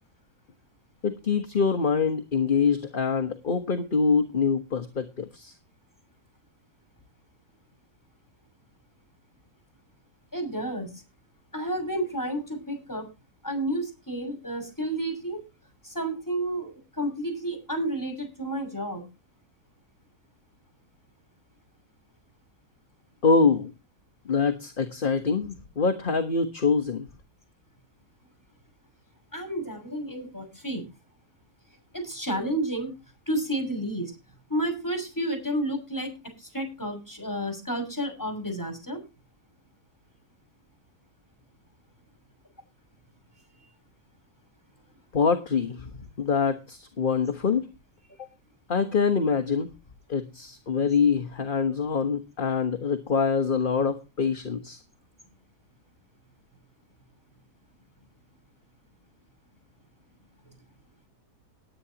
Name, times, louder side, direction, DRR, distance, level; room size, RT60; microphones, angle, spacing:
voice 1, 1.0-5.5 23.2-23.7 24.2-27.1 45.1-47.7 48.2-48.3 48.7-49.7 50.1-54.8, left 5 dB, 35° left, 7 dB, 1.3 m, -25 dB
voice 2, 10.3-11.0 11.5-13.1 13.4-15.4 15.8-19.0 29.3-30.9 31.9-32.9 33.3-34.1 34.5-36.1 36.4-39.0, right 1 dB, 10° left, 5 dB, 6.7 m, -31 dB
19.5 x 9.4 x 2.9 m, 0.28 s
omnidirectional pair, 1.6 m